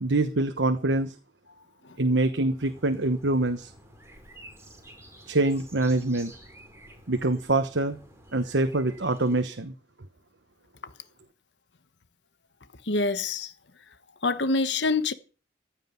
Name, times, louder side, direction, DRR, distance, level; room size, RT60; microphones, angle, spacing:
voice 1, 0.0-1.1 2.0-3.7 5.3-6.3 7.1-8.0 8.3-9.7, right 2 dB, 90° right, 1.2 m, -25 dB
sound 1, 2.6-9.4, right 1 dB, 15° right, 4.1 m, -51 dB
voice 2, 12.9-13.5 14.2-15.1, left 3 dB, 75° left, 1.2 m, -25 dB
15.0 x 6.5 x 9.4 m
head